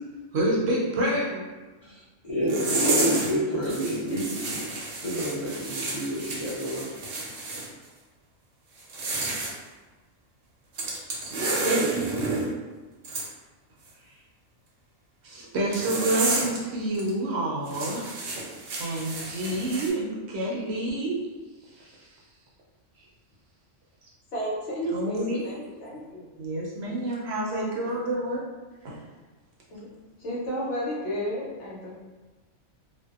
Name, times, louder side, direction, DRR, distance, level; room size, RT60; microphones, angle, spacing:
voice 1, 0.3-1.4 15.2-18.1 18.8-21.2 21.8-21.9 24.9-25.6 26.4-28.4 28.8-28.9, right 1 dB, 65° right, -4 dB, 0.8 m, -28 dB
voice 2, 2.3-4.6 4.9-6.9, equal, 40° left, -11 dB, 0.5 m, -28 dB
sound 1, 2.5-3.3 3.6-7.7 8.8-9.5 10.7-12.5 13.0-13.3 15.7-16.6 16.9-17.1 17.7-19.9, right 2 dB, 85° right, 1.0 m, -30 dB
voice 3, 24.3-26.3 29.7-29.9 30.2-31.9, equal, 70° left, -6 dB, 1.0 m, -32 dB
2.6 x 2.1 x 2.3 m, 1.2 s
omnidirectional pair, 1.3 m